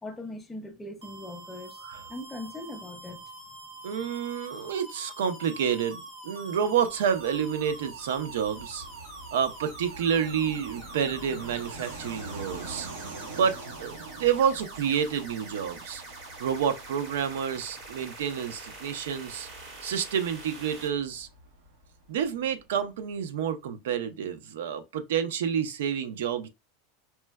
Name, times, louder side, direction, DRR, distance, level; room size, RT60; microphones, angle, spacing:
voice 1, 0.0-1.8 2.1-3.2, left 2 dB, 5° left, 0.4 m, -40 dB
sound 1, 1.0-20.9, right 2 dB, 50° right, 1.1 m, -45 dB
voice 2, 3.8-8.8 9.3-12.9 13.3-16.0 16.4-19.5 19.8-21.3 22.1-26.5, right 8 dB, 90° right, 0.5 m, -29 dB
Fixed-wing aircraft airplane, 6.6-22.8, right 2 dB, 70° right, 1.0 m, -46 dB
4.3 x 2.1 x 2.2 m
supercardioid pair, 175°, 0 cm